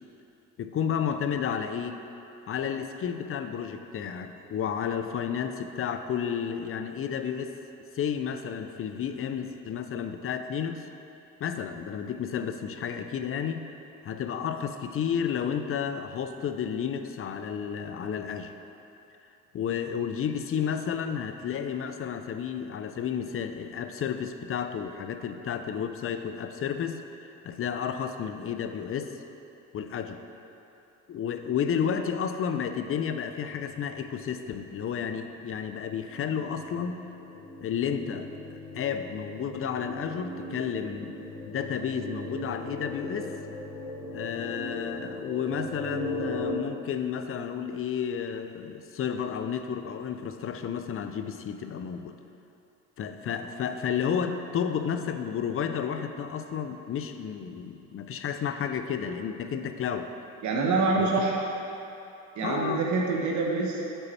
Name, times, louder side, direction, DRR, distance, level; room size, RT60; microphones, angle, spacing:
voice 1, 0.6-2.0 2.5-7.5 7.9-10.9 11.4-13.6 14.0-18.5 19.5-29.2 29.7-30.2 31.1-37.0 37.6-41.2 41.4-43.3 44.1-52.2 53.0-60.1 61.0-61.1 62.4-62.8, left 7 dB, 45° left, 8 dB, 0.5 m, -32 dB
sound 1, 33.4-46.5, left 1 dB, 65° left, 1.5 m, -39 dB
voice 2, 60.4-61.4 62.4-63.8, right 3 dB, 65° right, -1 dB, 1.0 m, -26 dB
8.2 x 5.6 x 4.3 m, 2.9 s
cardioid pair, 100°, 31 cm